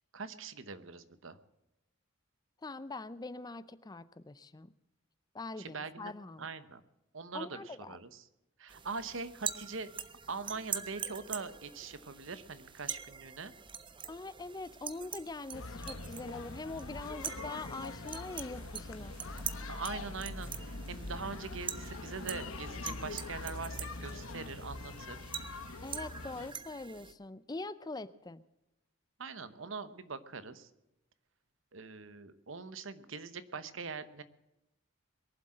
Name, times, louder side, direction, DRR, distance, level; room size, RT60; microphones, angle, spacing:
voice 1, 0.1-1.4 5.6-6.1 6.4-6.8 7.1-8.3 8.6-9.9 10.3-13.5 19.7-25.2 29.2-30.7 31.7-34.2, right 4 dB, 70° right, 13 dB, 1.0 m, -42 dB
voice 2, 2.6-4.7 5.3-6.5 7.3-8.0 14.1-19.2 25.8-28.4, left 2 dB, 20° left, 16 dB, 0.5 m, -43 dB
sound 1, 8.7-27.1, right 8 dB, 25° right, 0.6 m, -44 dB
sound 2, 15.5-26.5, left 3 dB, 90° left, 1.2 m, -43 dB
22.0 x 7.7 x 7.6 m, 0.92 s
head